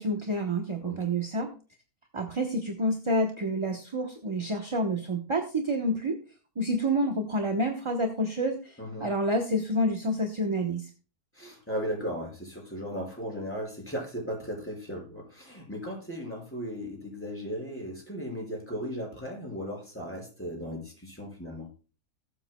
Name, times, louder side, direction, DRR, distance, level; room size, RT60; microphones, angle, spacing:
voice 1, 0.0-1.5 2.1-6.2 6.6-8.7 9.0-10.8, right 1 dB, 25° right, 3 dB, 0.8 m, -28 dB
voice 2, 8.8-9.1 11.3-21.7, equal, 5° left, -2 dB, 5.1 m, -36 dB
20.0 x 7.7 x 2.2 m, 0.36 s
omnidirectional pair, 1.7 m